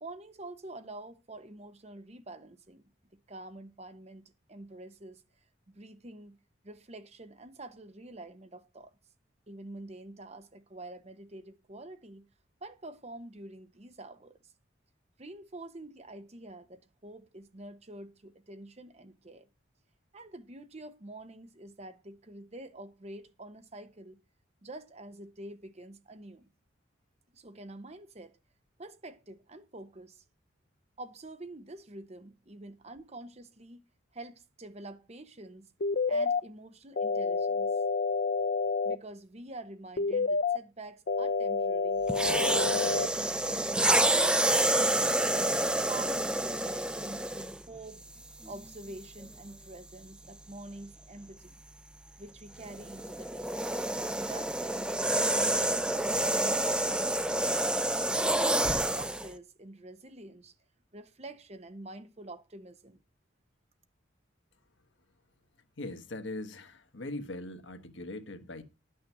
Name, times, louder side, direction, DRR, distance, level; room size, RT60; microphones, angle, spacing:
voice 1, 0.0-2.9 3.3-5.2 5.7-6.4 6.6-9.0 9.5-12.3 12.6-14.5 15.2-19.5 20.1-24.2 24.6-26.5 27.3-28.3 28.8-30.2 31.0-33.8 34.1-35.7 36.1-37.7 38.8-42.1 42.4-44.1 45.3-48.0 48.5-51.6 52.2-53.5 54.1-54.9 55.3-57.7 58.2-60.5 60.9-63.0, right 2 dB, 35° right, 0.9 m, -47 dB
sound 1, 35.8-36.4 37.0-39.0 40.0-40.6 41.1-43.1, left 4 dB, 50° left, 0.5 m, -28 dB
sound 2, 42.1-47.6 48.4-48.6 52.6-59.3, right 1 dB, 5° right, 0.5 m, -28 dB
voice 2, 65.8-68.6, left 2 dB, 70° left, 1.4 m, -40 dB
11.0 x 6.4 x 6.0 m
head